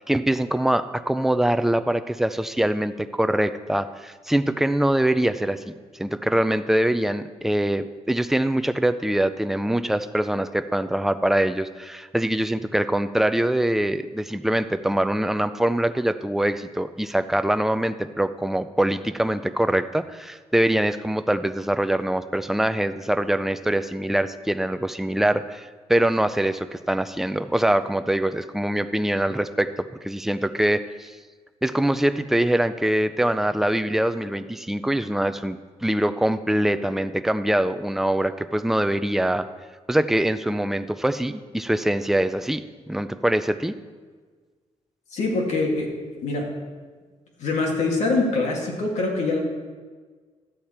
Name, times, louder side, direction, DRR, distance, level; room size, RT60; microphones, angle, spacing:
voice 1, 0.0-5.7 6.0-29.7 30.0-31.2 31.6-39.5 39.9-43.7, right 1 dB, 5° right, 10 dB, 0.4 m, -23 dB
voice 2, 45.1-46.0 46.2-46.5 47.4-49.4, left 3 dB, 80° left, 0 dB, 2.2 m, -24 dB
12.5 x 8.3 x 4.4 m, 1.5 s
cardioid pair, 110°, 12 cm